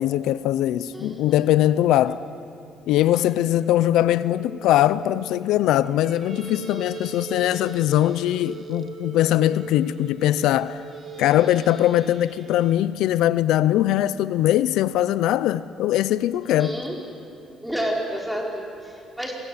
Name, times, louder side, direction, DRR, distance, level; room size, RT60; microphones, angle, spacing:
voice 1, 0.0-2.2 2.9-10.8 11.2-16.8, left 13 dB, 85° left, 0.6 m, -21 dB
voice 2, 0.9-1.4 16.5-17.0 17.6-19.3, equal, 5° right, 5.1 m, -30 dB
sound 1, 3.3-12.3, right 4 dB, 80° right, 5.4 m, -40 dB
Squeak, 5.8-8.9 9.7-12.8, right 4 dB, 35° right, 2.5 m, -50 dB
27.5 x 23.0 x 8.8 m
cardioid pair, 120°, 0 cm